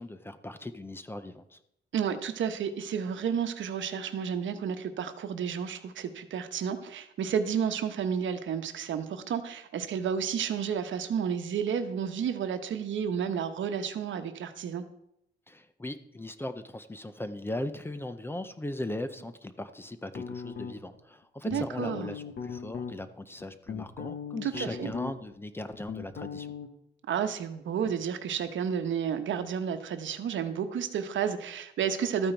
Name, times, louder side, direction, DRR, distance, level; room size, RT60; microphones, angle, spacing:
voice 1, 0.0-1.6 15.5-26.5, left 1 dB, 10° left, 11 dB, 0.5 m, -38 dB
voice 2, 1.9-14.8 21.5-22.1 24.4-24.9 27.1-32.3, right 7 dB, 85° right, 9 dB, 1.1 m, -31 dB
sound 1, 20.1-21.0 21.5-22.9 23.4-25.3 25.6-26.7, left 6 dB, 60° left, 1.1 m, -38 dB
13.0 x 8.9 x 4.5 m, 0.77 s
wide cardioid pair, 180°, 19 cm